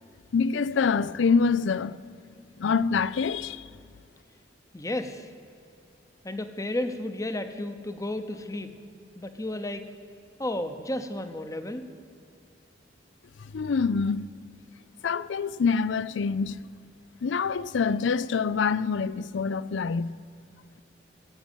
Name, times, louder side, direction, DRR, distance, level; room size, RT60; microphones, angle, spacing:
voice 1, 0.3-2.0 2.6-3.6 13.5-14.2 15.0-16.6 17.2-20.1, left 5 dB, 80° left, 0.4 m, -25 dB
voice 2, 4.7-5.3 6.2-8.7 9.2-9.8 10.4-11.9, left 1 dB, 15° left, 0.8 m, -32 dB
14.5 x 8.7 x 9.0 m
head